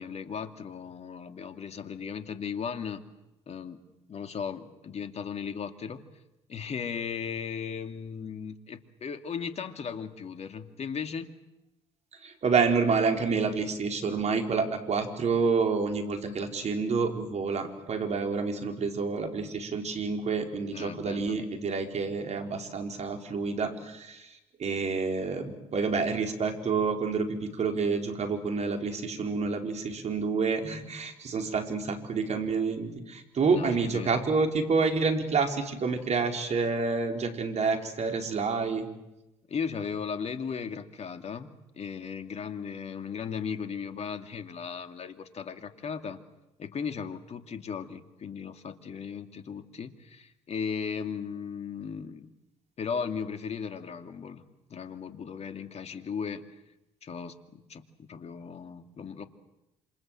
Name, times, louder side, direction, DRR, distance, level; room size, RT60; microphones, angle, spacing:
voice 1, 0.0-3.0 3.5-3.8 4.1-6.0 6.5-11.3 20.7-21.4 33.4-34.2 39.5-46.2 46.6-52.3 52.8-56.5 57.0-59.3, left 6 dB, 50° left, 7 dB, 2.6 m, -36 dB
voice 2, 12.2-24.3 24.6-38.9, right 4 dB, 50° right, 4 dB, 5.1 m, -28 dB
27.5 x 27.0 x 7.8 m, 0.94 s
hypercardioid pair, 60°, 15 cm